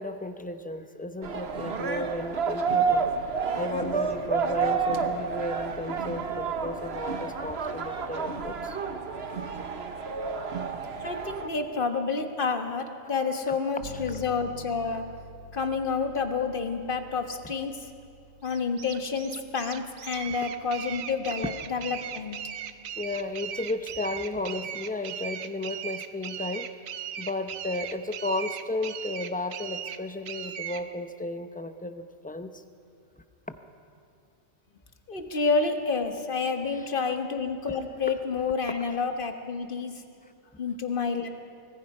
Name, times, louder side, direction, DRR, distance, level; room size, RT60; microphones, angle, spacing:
voice 1, 0.0-3.1 3.5-8.8 23.0-26.7 27.2-32.6 33.5-33.6 36.7-36.9, left 2 dB, 10° left, 9 dB, 0.5 m, -34 dB
sound 1, 1.2-11.5, right 5 dB, 55° right, 1.3 m, -30 dB
voice 2, 11.0-15.1 15.5-17.9 18.4-22.4 35.1-39.9 40.6-41.3, left 4 dB, 40° left, 6 dB, 1.5 m, -29 dB
Bass guitar, 13.8-23.6, left 2 dB, 75° left, 3.4 m, -49 dB
sound 2, 18.4-30.8, right 9 dB, 85° right, 1.2 m, -38 dB
25.0 x 19.0 x 5.5 m, 2.4 s
omnidirectional pair, 1.4 m